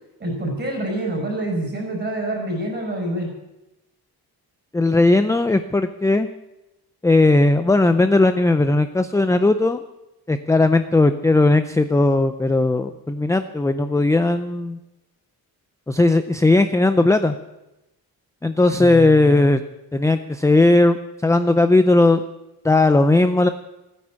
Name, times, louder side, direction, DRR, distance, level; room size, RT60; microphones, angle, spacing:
voice 1, 0.2-3.3 18.7-19.5, right 1 dB, 25° right, 1 dB, 5.4 m, -27 dB
voice 2, 4.7-6.3 7.0-9.8 10.3-14.8 15.9-17.3 18.4-19.6 19.9-21.0 21.2-22.2 22.6-23.5, left 2 dB, 10° left, 9 dB, 0.4 m, -17 dB
14.5 x 9.7 x 8.7 m, 0.96 s
wide cardioid pair, 170°, 38 cm